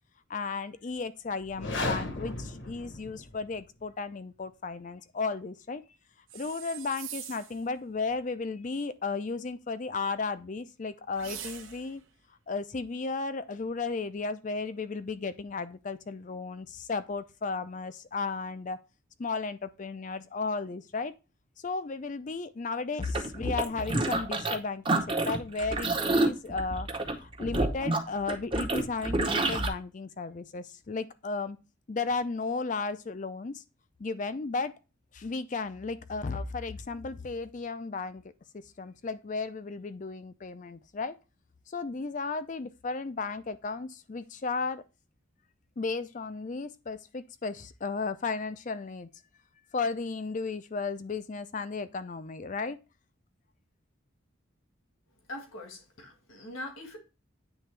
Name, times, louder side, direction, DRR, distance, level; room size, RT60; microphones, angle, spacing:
voice 1, 0.3-5.8 6.3-12.0 12.5-18.8 19.2-21.1 21.6-26.9 27.2-31.6 31.9-33.6 34.0-34.7 35.1-38.2 38.5-41.2 41.7-44.8 45.8-49.1 49.7-52.8, left 4 dB, 35° left, 0.4 m, -34 dB
sound 1, 1.4-3.6, left 2 dB, 60° left, 1.0 m, -35 dB
sound 2, 6.3-7.6 11.1-12.0, right 10 dB, 75° right, 0.8 m, -43 dB
sound 3, 23.0-24.6 24.8-29.7, right 2 dB, 25° right, 0.8 m, -28 dB
voice 2, 55.3-57.0, left 1 dB, 85° left, 1.6 m, -42 dB
9.1 x 3.4 x 3.2 m
head